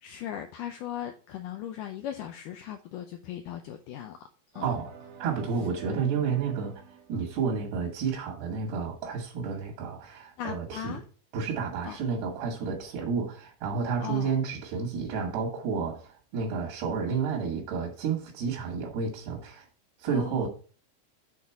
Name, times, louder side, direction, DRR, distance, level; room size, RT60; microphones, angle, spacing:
voice 1, 0.0-4.3 4.5-4.7 10.4-11.0 11.8-12.0 14.0-14.3 20.1-20.5, left 10 dB, 80° left, 1.9 m, -38 dB
sound 1, 4.5-8.4, right 5 dB, 60° right, 1.5 m, -49 dB
voice 2, 4.6-4.9 5.2-6.8 7.1-11.0 11.3-19.7 20.0-20.5, right 5 dB, 85° right, 3.7 m, -31 dB
8.6 x 4.0 x 4.4 m
omnidirectional pair, 4.4 m